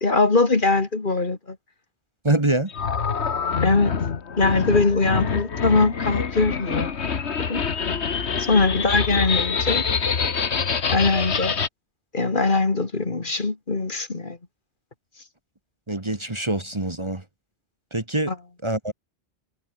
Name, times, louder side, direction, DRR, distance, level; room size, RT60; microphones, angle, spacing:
voice 1, 0.0-1.6 3.6-3.9 4.4-6.9 7.5-7.6 8.4-9.8 10.9-11.5 12.1-14.4 18.3-18.4, left 3 dB, 45° left, 2.1 m, -21 dB
voice 2, 2.2-2.7 15.9-17.2 17.9-18.3 18.6-18.9, right 2 dB, 25° right, 1.7 m, -24 dB
sound 1, 2.7-11.7, left 6 dB, 70° left, 1.7 m, -25 dB
omnidirectional pair, 1.2 m